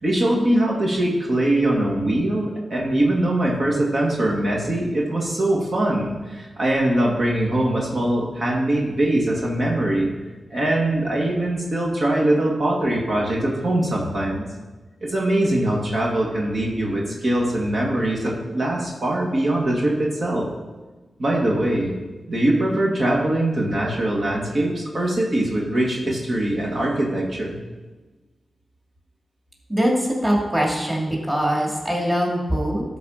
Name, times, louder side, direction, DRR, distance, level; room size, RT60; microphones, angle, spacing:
voice 1, 0.0-10.1 10.5-14.5 15.0-20.5 21.2-21.9 22.3-27.6, right 1 dB, 55° right, -3 dB, 2.0 m, -22 dB
voice 2, 29.7-32.8, equal, 15° right, -2 dB, 2.7 m, -22 dB
12.5 x 4.3 x 5.7 m, 1.2 s
cardioid pair, 60°, 0 cm